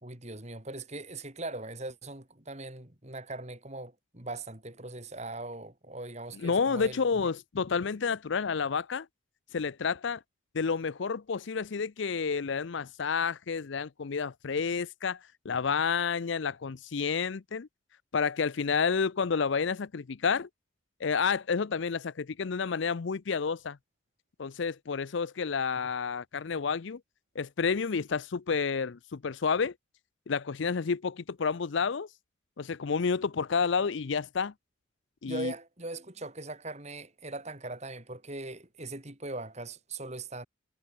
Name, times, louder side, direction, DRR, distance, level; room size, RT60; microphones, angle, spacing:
voice 1, 0.0-7.0 35.2-40.5, right 2 dB, 35° right, 3.7 m, -40 dB
voice 2, 6.3-9.1 9.5-10.2 10.5-15.2 15.4-17.7 18.1-20.5 21.0-23.8 24.4-27.0 27.4-29.7 30.3-32.1 32.6-34.5 35.2-35.5, left 5 dB, 65° left, 0.5 m, -30 dB
head